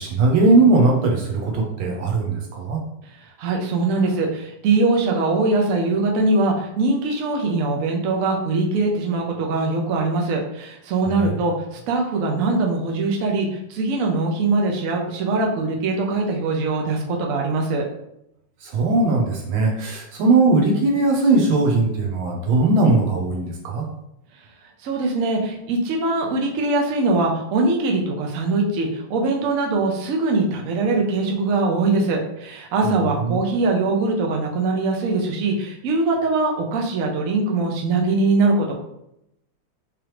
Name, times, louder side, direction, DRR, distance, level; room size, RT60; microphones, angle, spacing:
voice 1, 0.0-2.8 18.6-23.8 32.8-33.4, right 3 dB, 70° right, 0 dB, 1.6 m, -19 dB
voice 2, 3.4-17.9 24.8-38.7, right 3 dB, 90° right, 1 dB, 0.7 m, -22 dB
3.6 x 3.3 x 3.0 m, 0.82 s
omnidirectional pair, 2.4 m